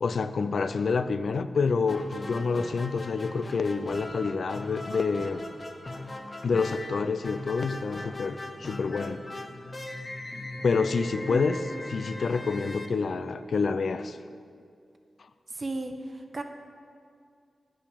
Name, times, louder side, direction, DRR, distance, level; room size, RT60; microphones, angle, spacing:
voice 1, 0.0-5.4 6.4-9.2 10.6-11.6 11.9-14.2, left 4 dB, 75° left, 11 dB, 0.4 m, -28 dB
sound 1, 1.9-13.7, left 2 dB, 40° left, 0.9 m, -39 dB
voice 2, 11.3-11.6 15.5-16.4, right 2 dB, 45° right, 6 dB, 0.9 m, -35 dB
9.5 x 5.8 x 6.8 m, 2.3 s
cardioid pair, 55°, 0 cm